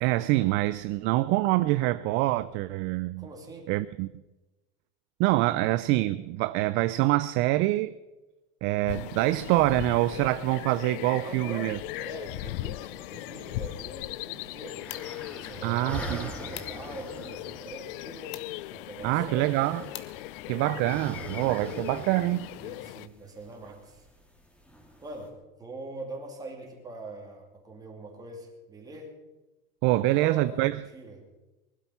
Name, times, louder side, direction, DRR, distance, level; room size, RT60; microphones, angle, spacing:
voice 1, 0.0-3.3 3.7-4.1 5.2-8.0 8.6-11.8 15.6-16.3 19.0-19.8 20.5-22.5 29.8-30.8, right 17 dB, 40° right, 0.4 m, -25 dB
voice 2, 3.2-3.7 11.1-14.9 15.3-19.6 22.6-24.0 25.0-29.2 29.9-31.3, right 2 dB, 10° right, 2.8 m, -43 dB
sound 1, 8.9-23.1, left 19 dB, 65° left, 0.4 m, -39 dB
sound 2, 14.5-20.9, left 11 dB, 40° left, 1.4 m, -49 dB
sound 3, 14.7-25.3, right 1 dB, 5° left, 2.8 m, -45 dB
20.0 x 12.0 x 5.6 m
supercardioid pair, 150°, 30 cm